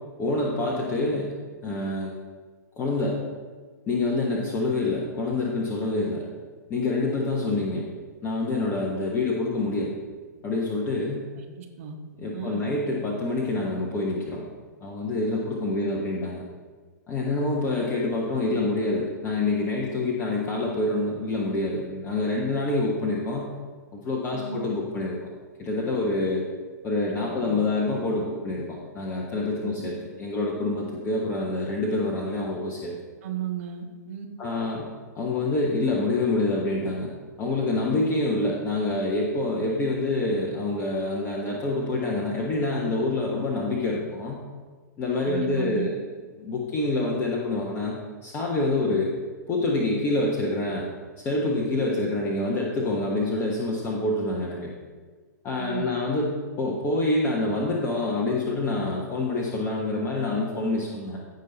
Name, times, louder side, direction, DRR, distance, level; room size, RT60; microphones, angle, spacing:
voice 1, 0.2-1.3 1.6-2.1 2.8-3.2 3.9-6.2 6.7-7.8 8.2-9.9 10.4-11.2 12.2-14.4 14.8-16.4 17.1-23.5 23.9-25.3 25.6-26.4 26.8-32.9 34.4-34.9 35.1-37.1 37.4-44.4 45.0-45.9 46.4-48.0 48.2-49.1 49.5-50.9 51.2-54.7 55.4-61.2, left 2 dB, 25° left, -3 dB, 1.3 m, -26 dB
voice 2, 11.4-12.0 12.3-12.7 15.7-15.9 24.3-24.6 27.3-27.6 29.6-29.8 33.2-34.3 45.2-45.9 55.6-55.9, right 9 dB, 45° right, 3 dB, 1.5 m, -35 dB
16.0 x 5.6 x 4.1 m, 1.4 s
figure-of-eight pair, 110°, 10 cm